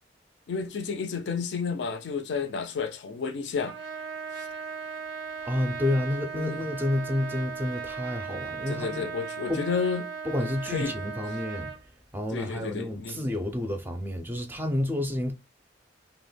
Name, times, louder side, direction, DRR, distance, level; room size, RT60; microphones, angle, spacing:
voice 1, 0.5-3.7 4.4-4.5 6.3-6.6 8.7-10.1 10.4-10.9 12.3-13.2, left 5 dB, 80° left, 0.4 m, -31 dB
Trumpet, 3.7-11.8, right 6 dB, 90° right, 0.6 m, -37 dB
voice 2, 5.4-9.1 9.5-9.6 10.2-11.7 12.1-15.3, left 1 dB, 10° right, 0.4 m, -30 dB
2.2 x 2.1 x 3.2 m
head